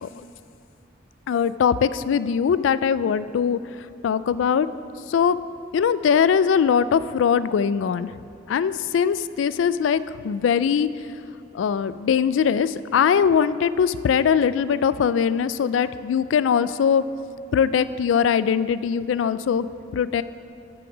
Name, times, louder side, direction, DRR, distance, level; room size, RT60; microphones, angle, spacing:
voice 1, 1.3-4.7 5.1-5.4 5.7-8.1 8.5-10.9 11.5-17.0 17.5-19.7 19.9-20.2, left 7 dB, 85° left, 15 dB, 0.3 m, -21 dB
9.8 x 6.0 x 4.9 m, 2.7 s
head